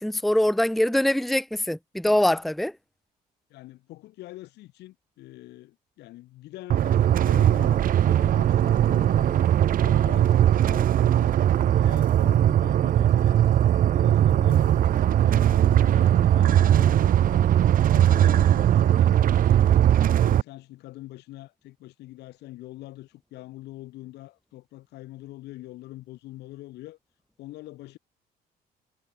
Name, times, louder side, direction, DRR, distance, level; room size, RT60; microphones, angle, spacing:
voice 1, 0.0-2.7, left 1 dB, ahead, 0.8 m, -23 dB
voice 2, 3.5-9.5 9.8-13.4 13.9-17.5 17.9-19.8 20.2-27.0 27.4-28.0, left 17 dB, 80° left, 5.3 m, -43 dB
sound 1, 6.7-20.4, right 11 dB, 55° right, 1.4 m, -20 dB
cardioid pair, 110°, 17 cm